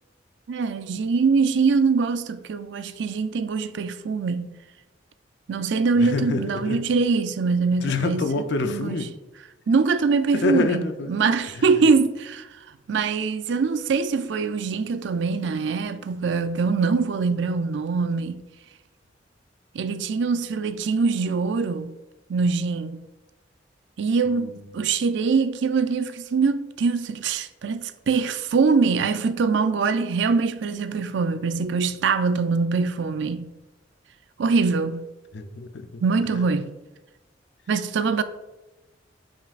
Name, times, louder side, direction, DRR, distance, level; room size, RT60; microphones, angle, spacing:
voice 1, 0.5-4.6 5.5-8.2 8.6-9.1 9.7-12.5 12.9-18.4 19.7-21.9 22.3-23.0 24.0-33.5 34.4-35.1 36.0-36.7 37.7-38.2, right 4 dB, 70° right, 0.4 m, -23 dB
voice 2, 6.0-6.8 7.8-9.1 10.3-11.1 11.5-11.6 24.3-24.6 35.3-36.0, left 3 dB, 65° left, 0.5 m, -27 dB
7.2 x 5.8 x 2.5 m
head